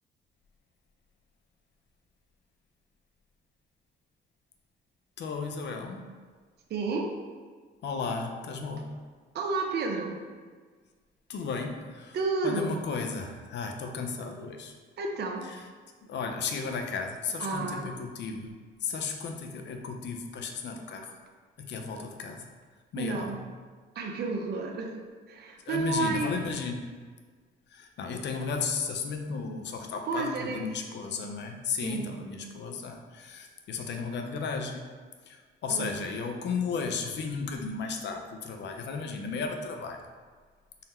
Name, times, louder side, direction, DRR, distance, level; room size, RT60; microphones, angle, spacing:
voice 1, 5.2-6.1 7.8-8.9 11.3-12.2 12.4-14.7 15.5-15.6 16.1-18.5 18.8-21.1 21.6-22.4 22.9-23.4 25.7-26.8 27.7-34.8 35.3-40.0, left 4 dB, 65° left, 4 dB, 0.5 m, -34 dB
voice 2, 6.7-7.1 9.3-10.2 12.1-12.8 15.0-15.5 17.4-17.9 22.9-23.4 23.9-25.0 25.3-26.4 30.0-30.7 31.8-32.1 35.7-35.9, right 3 dB, 55° right, 2 dB, 0.6 m, -31 dB
3.9 x 2.1 x 4.1 m, 1.5 s
cardioid pair, 90°, 20 cm